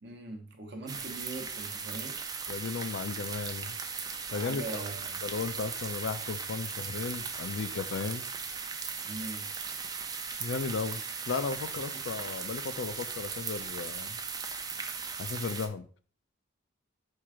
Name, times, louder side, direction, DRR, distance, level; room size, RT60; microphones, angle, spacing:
voice 1, 0.0-2.2 4.3-5.2 9.0-9.5, right 2 dB, 60° right, 0.8 m, -41 dB
sound 1, 0.9-15.7, right 5 dB, 20° right, 0.3 m, -38 dB
voice 2, 2.5-3.8 4.3-4.8 5.2-8.3 10.4-14.2 15.2-15.9, left 4 dB, 75° left, 0.4 m, -35 dB
4.5 x 2.5 x 4.7 m
head